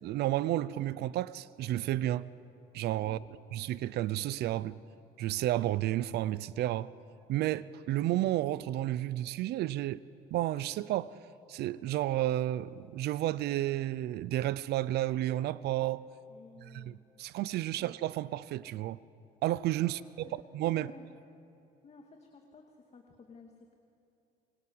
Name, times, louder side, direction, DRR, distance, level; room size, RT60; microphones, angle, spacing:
voice 1, 0.0-2.3 2.7-3.2 3.5-4.8 5.2-6.9 7.3-10.0 10.3-11.1 11.5-16.0 16.6-19.0 19.4-20.3 20.5-20.9, right 14 dB, 75° right, 0.7 m, -31 dB
voice 2, 16.3-17.1 17.6-17.9 19.8-19.9 20.2-20.4 20.7-21.1 21.8-23.7, left 4 dB, 40° left, 2.4 m, -55 dB
27.5 x 24.5 x 7.8 m
cardioid pair, 110°, 17 cm